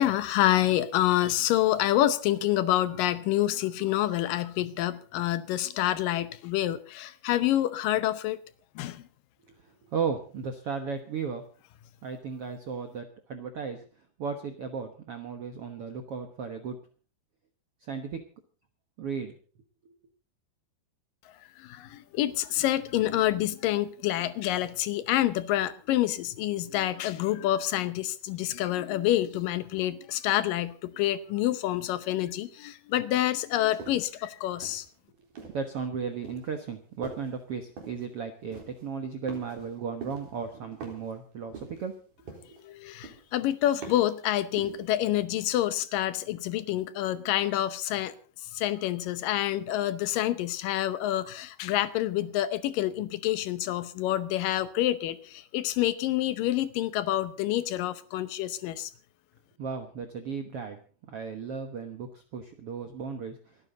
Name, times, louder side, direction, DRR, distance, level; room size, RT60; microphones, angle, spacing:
voice 1, 0.0-8.4 8.8-9.0 21.6-34.9 42.6-48.1 48.4-58.9, left 13 dB, 75° left, 2.2 m, -27 dB
voice 2, 9.9-11.4 12.0-13.8 14.2-16.8 17.9-18.2 19.0-19.3 35.5-41.9 42.5-42.6 59.6-60.8 61.1-63.3, right 6 dB, 85° right, 1.3 m, -35 dB
sound 1, 33.8-34.1 34.6-35.7 36.2-36.5 37.0-37.4 37.8-38.1 38.5-38.9 39.3-39.7 40.0-40.4 40.8-41.1 41.5-41.9 42.3-42.7 43.0-43.4 43.8-44.1 44.6-44.9, right 4 dB, 50° right, 5.2 m, -43 dB
28.5 x 9.7 x 3.9 m
omnidirectional pair, 4.6 m